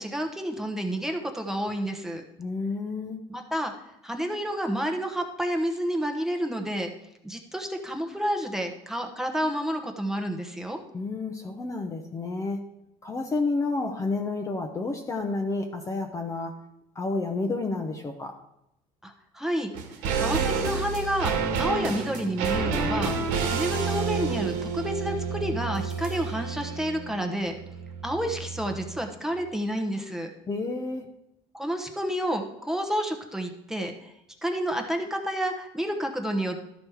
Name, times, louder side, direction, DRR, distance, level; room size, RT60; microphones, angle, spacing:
voice 1, 0.0-2.2 3.3-3.7 4.0-6.9 7.2-10.8 19.0-19.7 20.2-23.2 23.4-27.6 28.0-30.3 31.5-34.1 34.4-36.6, equal, 5° right, 3 dB, 0.9 m, -30 dB
voice 2, 2.4-3.2 10.9-12.6 13.0-16.5 17.0-18.3 30.5-31.1, left 3 dB, 25° left, 4 dB, 0.8 m, -30 dB
sound 1, 19.7-29.1 29.4-29.5, right 5 dB, 80° right, 1.6 m, -29 dB
12.5 x 5.2 x 4.6 m, 0.83 s
cardioid pair, 135°, 13 cm